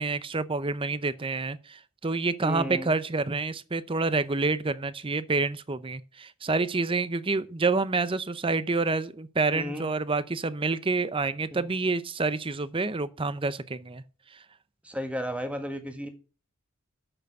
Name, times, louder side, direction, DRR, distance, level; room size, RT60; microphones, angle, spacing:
voice 1, 0.0-14.0 14.3-14.4, right 3 dB, 25° right, 0.6 m, -28 dB
voice 2, 2.4-2.9 9.5-9.9 11.5-11.7 14.8-16.1, equal, 5° right, 1.6 m, -34 dB
7.7 x 6.8 x 7.9 m
head